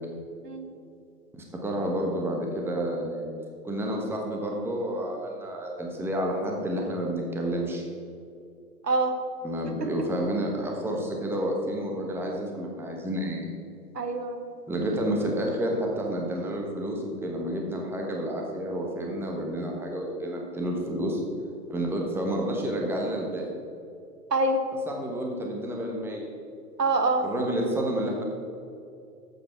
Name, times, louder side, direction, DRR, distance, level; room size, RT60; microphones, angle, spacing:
voice 1, 0.4-0.8 8.8-9.2 9.8-9.9 13.9-14.4 24.3-24.6 26.8-27.3, right 2 dB, 80° right, 6 dB, 1.5 m, -25 dB
voice 2, 1.3-3.2 3.6-7.8 9.4-13.5 14.7-21.2 21.7-23.4 24.9-26.2 27.2-28.2, right 1 dB, 5° right, 0 dB, 1.2 m, -30 dB
12.0 x 8.3 x 4.4 m, 2.5 s
figure-of-eight pair, 120°, 47 cm